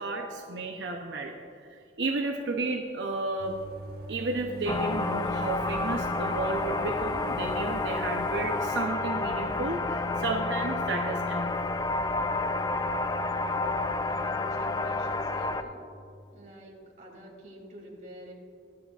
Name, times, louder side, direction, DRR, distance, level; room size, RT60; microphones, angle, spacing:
voice 1, 0.0-1.3 2.0-3.6 4.1-11.5, right 2 dB, 90° right, 2 dB, 0.7 m, -32 dB
sound 1, 2.3-2.4 4.2-8.8, equal, 65° left, 1.2 m, -45 dB
sound 2, 3.4-15.6, right 2 dB, 60° right, 1.3 m, -44 dB
sound 3, 4.7-15.6, left 3 dB, 20° left, 0.4 m, -30 dB
voice 2, 13.2-15.8 16.3-18.3, right 1 dB, 45° right, -2 dB, 2.8 m, -48 dB
23.0 x 7.8 x 2.4 m, 2.4 s
head